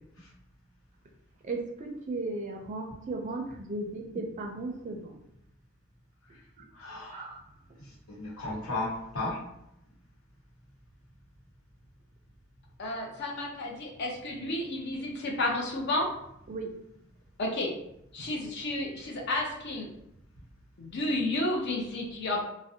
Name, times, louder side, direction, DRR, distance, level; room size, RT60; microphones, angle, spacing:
voice 1, 1.4-5.2 7.1-7.4 16.5-16.7 18.2-18.3, right 2 dB, 35° right, 1 dB, 0.4 m, -36 dB
voice 2, 6.7-7.3 7.8-9.4, left 2 dB, 85° left, -5 dB, 1.0 m, -35 dB
voice 3, 12.8-16.1 17.4-17.7 18.1-19.9 20.8-22.4, left 1 dB, 55° left, 0 dB, 0.5 m, -31 dB
2.5 x 2.0 x 2.6 m, 0.80 s
head